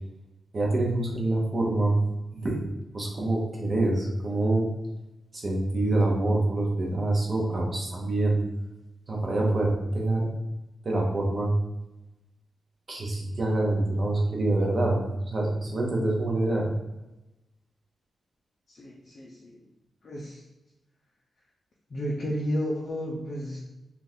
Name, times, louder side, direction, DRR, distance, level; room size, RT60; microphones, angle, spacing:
voice 1, 0.5-2.0 2.3-2.6 2.9-4.6 5.4-8.4 9.1-10.3 10.8-11.5 12.9-16.7, right 2 dB, 35° right, -2 dB, 0.7 m, -26 dB
voice 2, 18.7-19.6 20.0-20.4 21.9-23.6, equal, 40° left, -4 dB, 0.5 m, -32 dB
3.7 x 2.4 x 2.7 m, 0.96 s
wide cardioid pair, 150°, 0 cm